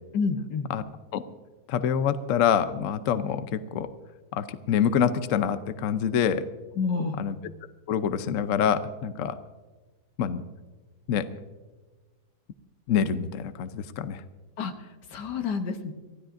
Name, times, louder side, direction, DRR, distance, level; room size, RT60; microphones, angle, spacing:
voice 1, 0.1-0.7 6.8-7.2 14.6-15.9, left 5 dB, 80° left, 7 dB, 1.7 m, -29 dB
voice 2, 1.7-3.9 4.3-6.4 7.2-7.4 7.9-9.4 10.2-10.4 11.1-11.3 12.9-14.2, left 8 dB, 60° left, 11 dB, 0.9 m, -26 dB
25.0 x 15.5 x 2.6 m, 1.3 s
omnidirectional pair, 1.8 m